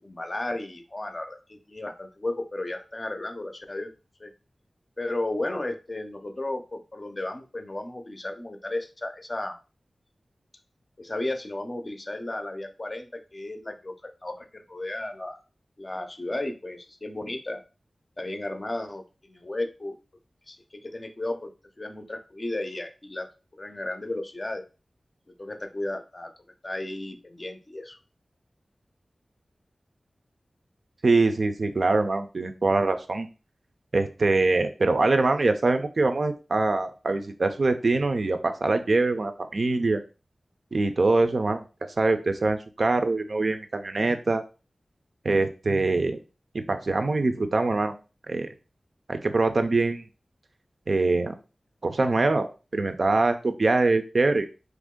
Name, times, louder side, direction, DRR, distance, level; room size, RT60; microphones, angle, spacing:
voice 1, 0.0-3.9 4.2-4.3 5.0-9.6 11.0-15.4 15.8-17.6 18.2-20.0 20.5-21.5 21.8-23.3 23.6-24.6 25.4-26.3 26.6-28.0, left 2 dB, 35° left, 6 dB, 0.5 m, -34 dB
voice 2, 31.0-33.3 33.9-40.0 40.7-41.6 42.0-44.4 45.2-46.2 46.5-47.9 48.3-48.5 49.1-50.1 50.9-51.3 51.8-52.5 52.7-54.5, right 3 dB, 60° right, 8 dB, 0.4 m, -23 dB
2.9 x 2.5 x 3.6 m, 0.32 s
wide cardioid pair, 80°, 0 cm